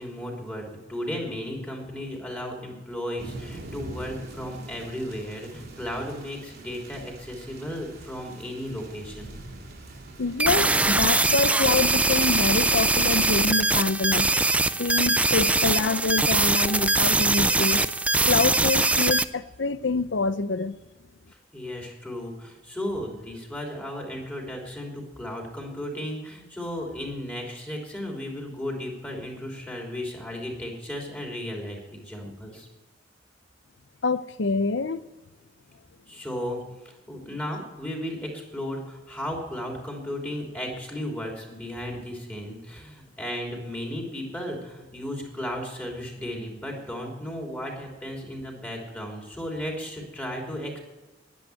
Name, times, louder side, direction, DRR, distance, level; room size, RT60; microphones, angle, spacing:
voice 1, 0.0-9.3 21.5-32.7 36.1-36.6 36.8-50.8, left 1 dB, 10° left, 3.2 m, -35 dB
sound 1, 3.2-11.3, right 2 dB, 60° right, 2.5 m, -43 dB
voice 2, 10.2-14.3 14.8-17.9 18.3-20.8 34.0-35.0, left 4 dB, 70° left, 0.6 m, -26 dB
sound 2, 10.4-19.2, right 2 dB, 5° right, 0.4 m, -22 dB
11.0 x 10.5 x 9.1 m
head